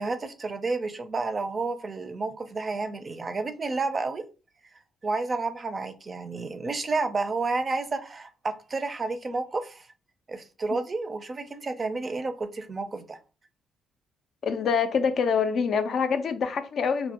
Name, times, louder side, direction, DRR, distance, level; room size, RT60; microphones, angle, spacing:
voice 1, 0.0-4.2 5.0-9.9 10.3-13.2, right 3 dB, 35° right, 0.4 m, -30 dB
voice 2, 14.4-17.1, left 6 dB, 60° left, 0.3 m, -25 dB
2.1 x 2.1 x 2.8 m
supercardioid pair, 70°, 0 cm